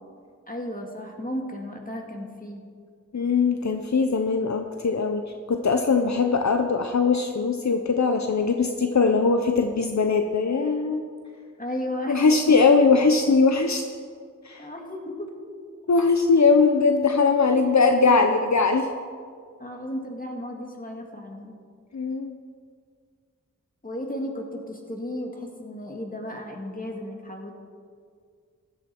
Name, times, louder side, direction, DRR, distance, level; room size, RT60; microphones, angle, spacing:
voice 1, 0.5-2.6 11.6-12.3 14.6-15.3 17.3-17.7 18.0-18.3 19.6-21.5 23.8-27.5, left 1 dB, 30° left, 1 dB, 2.2 m, -34 dB
voice 2, 3.1-5.2 5.5-11.0 12.1-13.8 14.4-14.7 15.9-18.9 21.9-22.4, left 4 dB, 65° left, 5 dB, 0.7 m, -21 dB
15.0 x 11.5 x 4.5 m, 2.1 s
wide cardioid pair, 55°, 30 cm